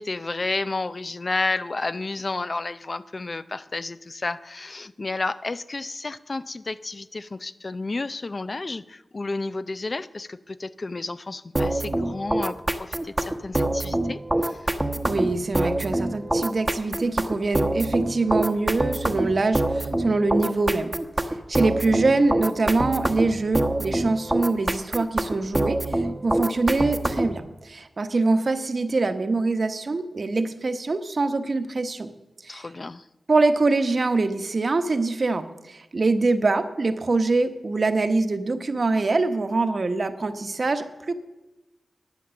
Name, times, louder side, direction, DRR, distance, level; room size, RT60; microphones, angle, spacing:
voice 1, 0.0-14.7 32.5-33.0, left 3 dB, 45° left, 14 dB, 0.5 m, -31 dB
sound 1, 11.6-27.4, right 1 dB, 15° right, 1.0 m, -25 dB
voice 2, 15.1-20.9 21.5-32.1 32.4-32.7 33.3-41.1, right 3 dB, 55° right, 9 dB, 1.0 m, -24 dB
11.5 x 9.0 x 7.0 m, 1.0 s
cardioid pair, 65°, 0 cm